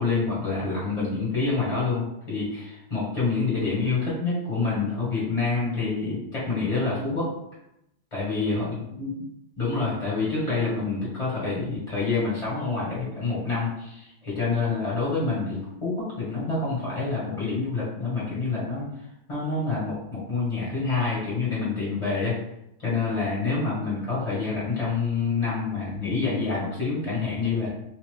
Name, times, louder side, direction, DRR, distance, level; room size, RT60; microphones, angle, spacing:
voice 1, 0.0-7.3 8.1-9.1 9.6-18.8 19.3-22.3 22.8-27.7, left 4 dB, 25° left, -7 dB, 1.4 m, -27 dB
3.4 x 2.7 x 3.3 m, 0.81 s
omnidirectional pair, 1.3 m